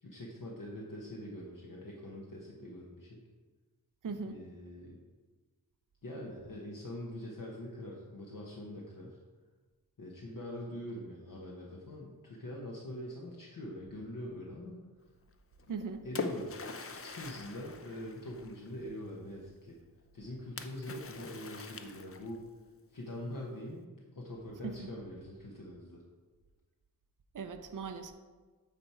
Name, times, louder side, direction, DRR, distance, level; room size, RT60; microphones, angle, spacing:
voice 1, 0.0-3.2 4.1-5.0 6.0-9.2 10.0-14.8 16.0-19.8 20.1-22.4 22.9-26.0, left 1 dB, 60° left, -3 dB, 1.1 m, -44 dB
voice 2, 4.0-4.4 15.7-16.0 24.6-24.9 27.3-28.1, right 5 dB, 60° right, 7 dB, 0.6 m, -39 dB
Splash splatter, 15.6-18.8 20.6-22.5, left 4 dB, 40° left, 0.5 m, -43 dB
8.7 x 4.4 x 4.8 m, 1.3 s
wide cardioid pair, 100°, 37 cm